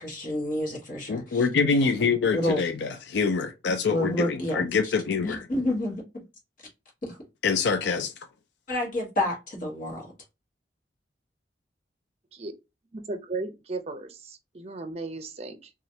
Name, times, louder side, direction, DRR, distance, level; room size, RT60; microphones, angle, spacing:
voice 1, 0.0-1.5 1.8-2.0 2.3-2.6 3.9-4.9 5.2-6.2 7.0-7.2 8.7-10.1, left 1 dB, 50° left, 1.3 m, -29 dB
voice 2, 1.1-5.4 7.4-8.1, left 5 dB, 70° left, 0.4 m, -25 dB
voice 3, 12.9-15.7, right 3 dB, 35° right, 0.5 m, -36 dB
3.0 x 2.4 x 2.7 m
head